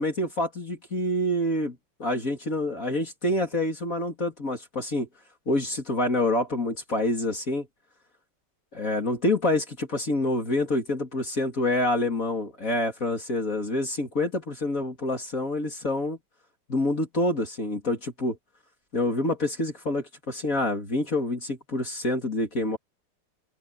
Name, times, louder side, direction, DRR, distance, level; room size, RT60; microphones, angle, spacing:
voice 1, 0.0-5.1 5.5-7.7 8.7-16.2 16.7-18.4 18.9-22.8, left 1 dB, 35° left, 3.2 m, -27 dB
open air
omnidirectional pair, 2.4 m